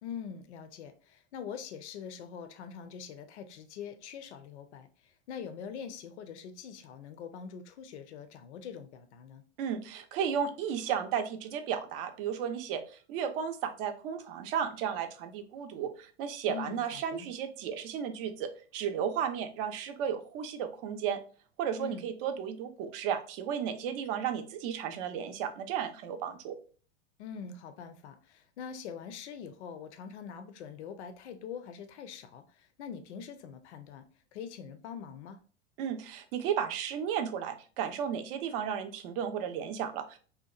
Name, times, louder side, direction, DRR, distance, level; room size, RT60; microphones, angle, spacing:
voice 1, 0.0-9.4 16.5-17.3 21.8-22.1 27.2-34.0 34.3-35.4, left 7 dB, 75° left, 0.5 m, -44 dB
voice 2, 9.6-21.2 21.6-26.5 35.8-40.2, right 8 dB, 55° right, 0.5 m, -34 dB
2.8 x 2.2 x 2.3 m
hypercardioid pair, 95°, 34 cm